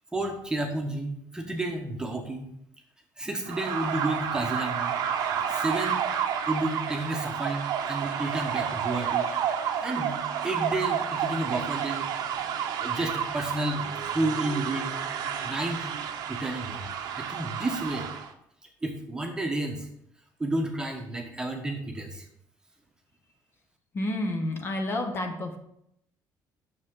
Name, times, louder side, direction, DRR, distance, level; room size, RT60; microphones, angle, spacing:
voice 1, 0.1-2.5 3.2-5.0 5.4-6.0 6.4-9.3 9.8-12.1 12.8-13.8 14.1-15.0 15.4-15.9 16.3-18.1 18.8-19.9 20.4-22.2, right 2 dB, 10° right, 2 dB, 1.2 m, -31 dB
sound 1, 3.5-18.3, right 8 dB, 70° right, 0.9 m, -30 dB
voice 2, 23.9-25.6, left 1 dB, 35° left, 4 dB, 1.1 m, -30 dB
9.3 x 6.8 x 3.8 m, 0.75 s
cardioid pair, 155°, 7 cm